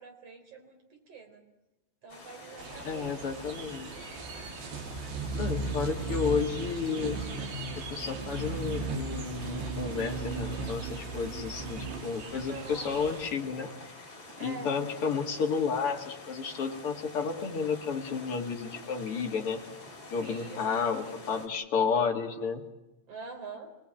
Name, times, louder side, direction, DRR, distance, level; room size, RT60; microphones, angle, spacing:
voice 1, 0.0-1.4 2.0-4.2 5.1-6.2 12.3-12.9 14.4-14.8 20.2-21.3 23.1-23.7, right 4 dB, 40° right, 4 dB, 4.5 m, -47 dB
sound 1, 2.1-21.5, left 2 dB, 25° left, 4.7 m, -47 dB
sound 2, 2.6-13.3, right 3 dB, 85° right, 4.4 m, -37 dB
voice 2, 2.8-3.9 5.3-7.2 7.7-13.7 14.4-19.6 20.1-22.6, left 5 dB, 40° left, 2 dB, 2.5 m, -31 dB
26.5 x 19.0 x 9.0 m, 0.99 s
omnidirectional pair, 4.7 m